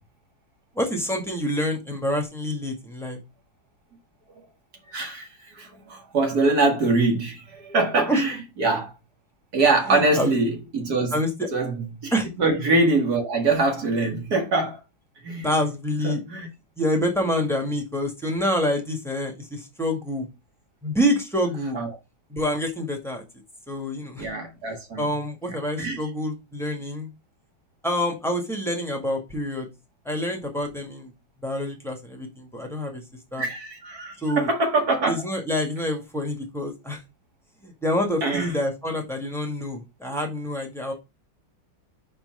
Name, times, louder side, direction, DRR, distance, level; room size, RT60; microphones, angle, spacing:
voice 1, 0.7-3.2 8.1-8.2 9.9-10.3 11.1-11.5 12.1-12.3 15.4-16.2 16.8-20.3 20.8-21.8 22.3-23.2 23.7-24.3 25.0-27.1 27.8-29.7 30.0-31.1 31.4-33.0 33.3-33.5 34.2-34.5 35.1-37.0 37.6-40.9, equal, ahead, 1.7 m, -27 dB
voice 2, 4.9-8.9 9.5-11.2 11.5-14.8 15.2-15.5 16.0-16.5 21.7-21.9 24.2-25.1 25.5-26.0 33.4-35.2 38.2-38.6, right 3 dB, 50° right, 2.5 m, -24 dB
5.8 x 4.5 x 5.6 m
omnidirectional pair, 2.2 m